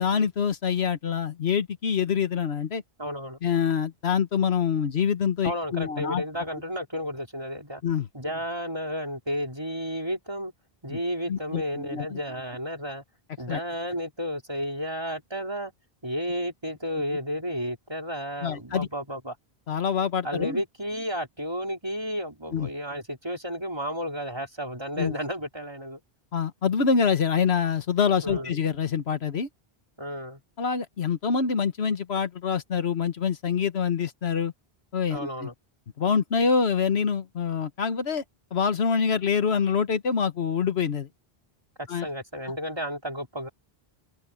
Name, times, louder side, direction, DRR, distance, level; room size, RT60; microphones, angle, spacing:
voice 1, 0.0-2.8 3.4-6.2 7.8-8.1 10.9-11.0 11.3-12.2 13.5-13.6 18.4-18.9 19.7-20.6 22.5-22.7 25.0-25.1 26.3-29.5 30.6-34.5 34.9-35.5 36.0-38.2 38.5-41.1 41.9-42.1, left 6 dB, 90° left, 1.5 m, -25 dB
voice 2, 3.0-3.4 5.4-7.8 8.1-10.5 10.8-13.0 13.4-15.7 16.0-19.4 20.2-26.0 28.2-28.5 30.0-30.4 35.1-35.5 41.8-43.5, equal, 25° right, 4.3 m, -32 dB
omnidirectional pair, 1.0 m